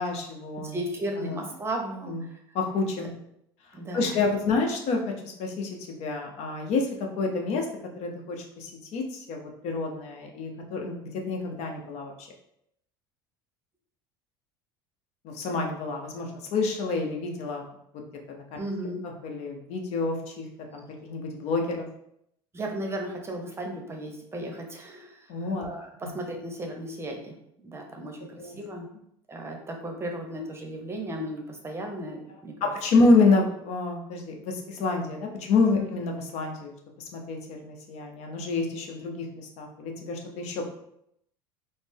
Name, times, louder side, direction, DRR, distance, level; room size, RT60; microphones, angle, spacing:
voice 1, 0.0-0.8 1.2-1.4 2.1-2.2 2.5-3.1 3.9-6.9 7.2-7.7 8.0-12.3 15.2-17.6 18.3-18.6 19.0-20.5 20.7-21.9 25.3-25.7 26.0-26.1 28.4-28.6 32.6-36.7 37.1-40.7, left 3 dB, 60° left, 2 dB, 0.7 m, -28 dB
voice 2, 0.6-2.4 3.7-4.2 18.6-19.0 22.5-27.3 27.6-28.9 29.3-32.7 35.8-35.9, right 1 dB, 20° right, 2 dB, 0.7 m, -35 dB
4.0 x 2.0 x 3.4 m, 0.75 s
hypercardioid pair, 85°, 13 cm